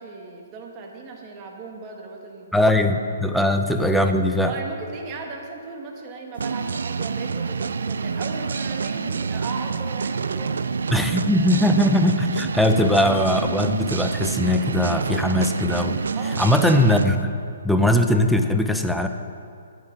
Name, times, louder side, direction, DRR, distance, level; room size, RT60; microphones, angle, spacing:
voice 1, 0.0-2.7 3.2-3.4 4.4-10.6 10.9-11.0 11.5-11.6 16.1-16.6, right 3 dB, 30° right, 1 dB, 1.5 m, -37 dB
voice 2, 2.5-4.5 10.9-16.0 16.4-17.4 17.6-19.1, left 1 dB, ahead, 5 dB, 0.6 m, -20 dB
sound 1, 6.4-17.1, right 5 dB, 80° right, 0.4 m, -27 dB
10.5 x 9.5 x 5.9 m, 2.4 s
hypercardioid pair, 145°, 0 cm